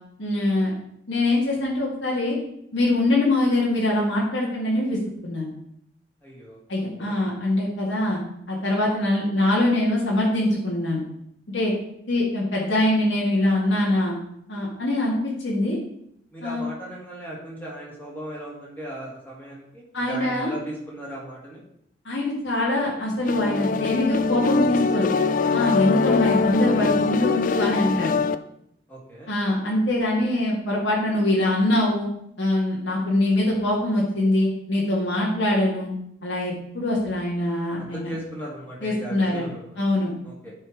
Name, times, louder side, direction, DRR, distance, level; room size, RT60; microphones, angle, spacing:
voice 1, 0.2-0.7 1.1-2.4 2.7-5.5 6.7-8.2 8.5-11.0 11.5-11.7 12.1-14.1 14.5-15.8 16.4-16.6 19.9-20.5 22.1-25.1 25.5-28.1 29.3-32.1 32.4-35.9 36.2-38.1 38.8-39.5 39.8-40.1, left 1 dB, 75° left, -5 dB, 2.1 m, -23 dB
voice 2, 6.2-6.6 7.0-7.2 16.3-21.6 28.9-29.3 37.8-39.8 40.2-40.5, right 1 dB, 10° left, -4 dB, 2.4 m, -37 dB
sound 1, 23.3-28.3, left 4 dB, 45° left, 0.3 m, -22 dB
10.5 x 4.5 x 4.6 m, 0.75 s
head